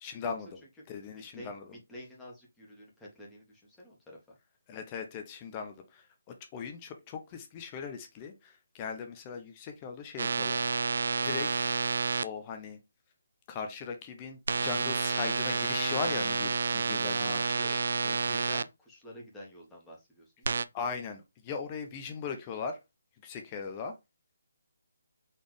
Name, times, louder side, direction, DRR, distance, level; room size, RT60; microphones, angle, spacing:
voice 1, 0.0-0.6 0.9-1.7 4.7-11.0 11.2-11.6 12.2-12.8 13.5-17.8 20.7-22.8 23.2-23.9, left 5 dB, 25° left, 0.7 m, -39 dB
voice 2, 1.1-4.2 17.1-20.6, equal, 5° left, 1.6 m, -48 dB
sound 1, 10.2-12.2 14.5-18.6 20.4-20.6, right 4 dB, 65° right, 0.3 m, -29 dB
4.1 x 3.3 x 3.3 m
figure-of-eight pair, 155°, 0 cm